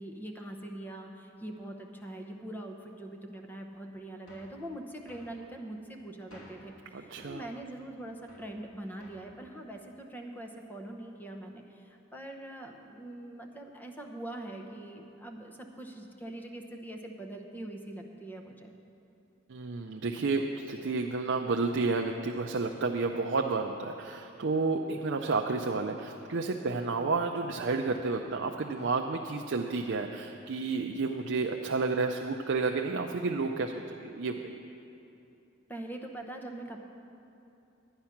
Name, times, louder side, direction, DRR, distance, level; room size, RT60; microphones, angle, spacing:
voice 1, 0.0-18.7 35.7-36.8, right 1 dB, 10° left, 3 dB, 0.8 m, -43 dB
sound 1, 4.3-4.6 5.1-5.4 6.3-6.7 7.2-7.4 8.3-8.6 9.0-9.3, equal, 90° left, 2.3 m, -53 dB
voice 2, 6.9-7.4 19.5-34.6, right 3 dB, 65° right, 2 dB, 0.5 m, -31 dB
11.5 x 9.6 x 5.8 m, 2.8 s
head